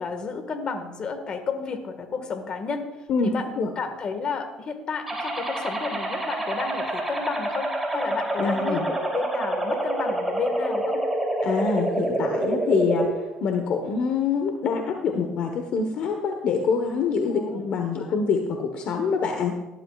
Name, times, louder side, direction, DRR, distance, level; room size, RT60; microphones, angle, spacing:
voice 1, 0.0-2.9 3.2-11.0 12.8-12.9 17.3-17.6 18.0-18.2, left 5 dB, 40° left, 7 dB, 1.7 m, -32 dB
voice 2, 3.1-3.7 8.4-8.8 11.4-19.5, left 5 dB, 60° left, 4 dB, 1.2 m, -25 dB
sound 1, 5.1-13.1, right 1 dB, 10° right, 3.1 m, -27 dB
17.5 x 11.5 x 2.4 m, 1.1 s
cardioid pair, 105°, 2 cm